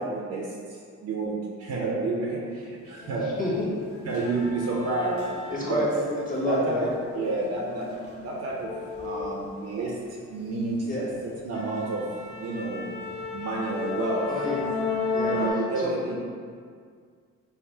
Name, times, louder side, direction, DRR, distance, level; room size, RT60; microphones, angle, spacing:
voice 1, 0.0-3.3 4.0-5.3 5.6-5.9 6.4-6.9 7.1-7.9 8.2-10.0 10.3-11.1 11.4-12.1 12.4-12.9 13.3-14.3 15.3-16.2, right 3 dB, 55° right, -2 dB, 0.5 m, -30 dB
sound 1, 3.0-3.2 3.5-5.9 6.3-10.0 10.4-10.7 11.1-11.2 11.5-15.5, left 3 dB, 50° left, 0.7 m, -34 dB
voice 2, 3.1-3.7 5.5-6.0 6.3-6.9 10.8-11.0 14.3-14.6 15.1-15.3 15.8-15.9, left 1 dB, 25° left, -6 dB, 1.2 m, -28 dB
3.3 x 2.1 x 4.2 m, 2.1 s
cardioid pair, 90°, 30 cm